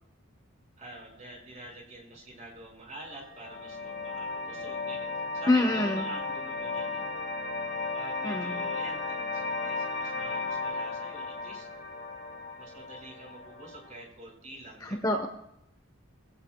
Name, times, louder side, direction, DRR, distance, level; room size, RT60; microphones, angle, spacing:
voice 1, 0.8-7.2 7.9-11.7 12.6-15.2, right 2 dB, 35° right, -1 dB, 5.1 m, -47 dB
sound 1, 3.0-14.0, left 3 dB, 40° left, 4.7 m, -35 dB
voice 2, 5.5-6.0 8.2-8.7 14.8-15.3, left 2 dB, 15° left, 5 dB, 0.9 m, -26 dB
22.0 x 16.5 x 2.2 m, 0.78 s
head